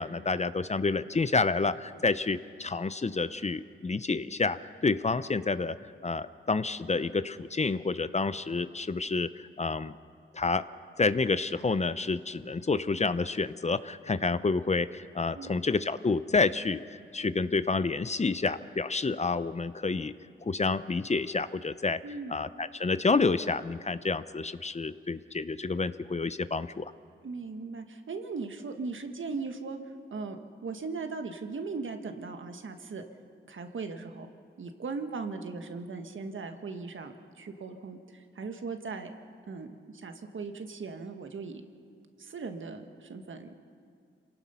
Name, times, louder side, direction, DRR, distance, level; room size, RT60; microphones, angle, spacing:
voice 1, 0.0-5.8 6.0-9.9 10.3-10.6 11.0-16.8 17.1-20.1 20.4-22.0 22.3-26.9, left 4 dB, 30° left, 14 dB, 0.6 m, -29 dB
voice 2, 22.0-22.3 27.2-29.8 30.1-33.0 33.5-34.3 34.6-39.1 39.5-39.7 39.9-41.6 42.2-43.6, right 4 dB, 70° right, 6 dB, 1.6 m, -38 dB
26.5 x 18.0 x 5.6 m, 2.2 s
cardioid pair, 60°, 21 cm